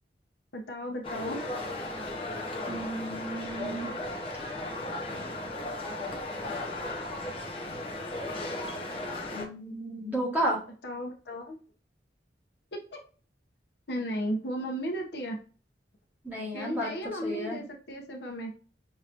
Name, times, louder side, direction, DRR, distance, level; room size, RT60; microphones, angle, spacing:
voice 1, 0.5-1.4 10.8-11.5 13.9-15.4 16.5-18.5, equal, 70° left, 2 dB, 0.9 m, -34 dB
sound 1, 1.0-9.4, left 2 dB, 30° left, 0.8 m, -36 dB
voice 2, 2.7-3.9 9.3-10.6 16.2-17.6, right 1 dB, 10° right, -5 dB, 1.6 m, -33 dB
5.6 x 2.9 x 2.5 m, 0.37 s
head